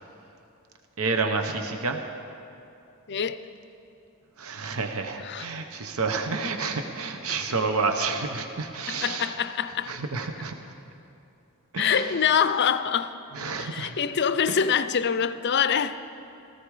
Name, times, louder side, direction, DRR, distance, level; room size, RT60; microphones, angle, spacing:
voice 1, 1.0-2.0 4.4-9.3 9.8-10.6 11.7-12.1 13.3-13.9 14.5-14.6, right 4 dB, 70° right, 1.0 m, -29 dB
voice 2, 3.1-3.4 5.2-5.5 8.9-9.9 11.8-13.1 13.6-16.0, left 7 dB, 50° left, 0.5 m, -25 dB
17.0 x 14.5 x 4.9 m
head